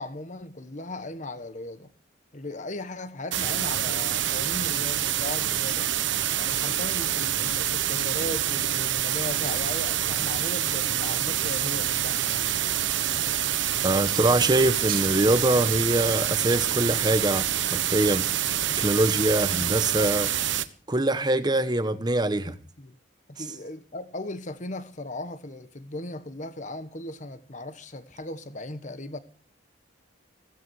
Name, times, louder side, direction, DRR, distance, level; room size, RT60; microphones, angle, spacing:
voice 1, 0.0-1.9 2.3-5.9 6.4-12.2 19.6-19.8 22.4-23.0 23.3-29.2, left 2 dB, 40° left, 1.3 m, -37 dB
sound 1, 3.3-20.7, right 11 dB, 75° right, 1.2 m, -26 dB
sound 2, 13.2-20.1, right 7 dB, 50° right, 2.4 m, -46 dB
voice 2, 13.8-18.3 18.8-20.3 20.9-22.6, right 1 dB, 20° right, 1.1 m, -23 dB
16.5 x 15.5 x 4.8 m
head